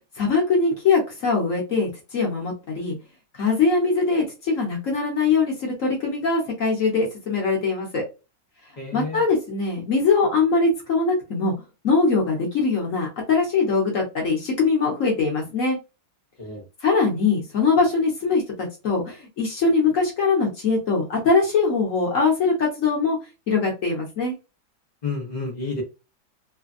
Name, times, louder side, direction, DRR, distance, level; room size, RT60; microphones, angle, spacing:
voice 1, 0.2-2.9 3.3-8.0 8.9-11.5 11.8-15.8 16.8-18.4 18.8-23.2 23.5-24.3, left 4 dB, 50° left, -1 dB, 1.1 m, -22 dB
voice 2, 8.8-9.2 16.4-16.6 25.0-25.8, left 3 dB, 65° left, -2 dB, 0.4 m, -30 dB
3.3 x 2.2 x 2.5 m, 0.28 s
omnidirectional pair, 2.1 m